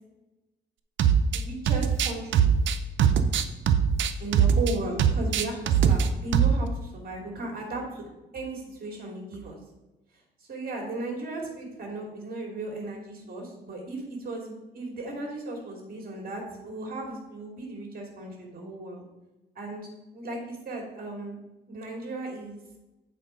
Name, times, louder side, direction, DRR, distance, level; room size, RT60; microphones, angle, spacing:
sound 1, 1.0-1.4 1.7-4.7 5.0-6.1 6.3-6.6, right 8 dB, 70° right, 0.6 m, -21 dB
voice 1, 1.3-2.5 2.9-3.1 4.2-8.0 8.3-9.6 10.4-19.0 19.5-21.4 21.7-22.6, right 2 dB, 50° right, 1 dB, 2.6 m, -36 dB
7.7 x 4.4 x 5.1 m, 1.0 s
cardioid pair, 90°, 20 cm